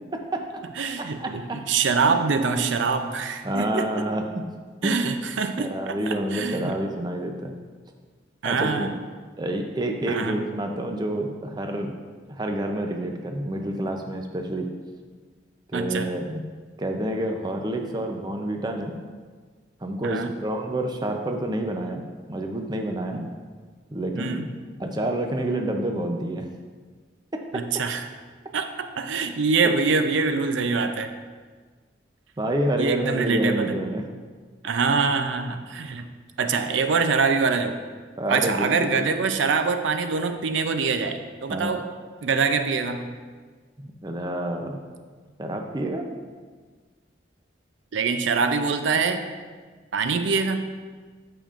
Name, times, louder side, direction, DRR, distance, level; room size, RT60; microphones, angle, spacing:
voice 1, 0.1-0.4 1.0-1.3 2.0-2.5 3.4-4.2 4.8-5.0 5.6-7.6 8.4-8.9 9.4-11.9 12.3-14.7 15.7-16.4 16.8-19.0 19.8-22.0 22.3-23.3 23.9-24.4 24.8-26.5 27.3-27.4 29.6-29.8 32.4-34.0 38.2-39.1 41.5-41.8 43.8-44.8 45.4-46.1, right 1 dB, 20° right, 3 dB, 0.5 m, -28 dB
voice 2, 0.8-4.1 4.8-6.8 8.4-8.9 10.1-10.4 15.7-16.1 20.0-20.3 23.1-23.3 24.1-24.5 27.5-28.0 28.5-28.7 29.0-31.1 32.8-33.8 34.6-36.0 36.4-37.8 38.3-41.8 42.2-43.1 47.9-49.3 49.9-50.8, right 4 dB, 80° right, 8 dB, 0.5 m, -24 dB
8.8 x 6.8 x 2.5 m, 1.5 s
head